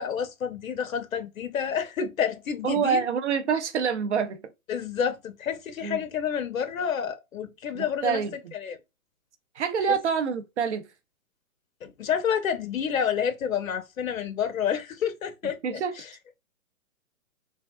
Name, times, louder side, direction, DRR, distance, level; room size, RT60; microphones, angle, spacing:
voice 1, 0.0-3.0 4.7-8.2 8.5-8.8 9.9-10.0 11.8-16.1, left 8 dB, 70° left, 0.8 m, -29 dB
voice 2, 2.6-4.4 5.8-6.0 7.7-8.3 9.6-10.9 15.6-15.9, right 6 dB, 55° right, 0.7 m, -26 dB
3.4 x 2.2 x 2.2 m
hypercardioid pair, 155°, 43 cm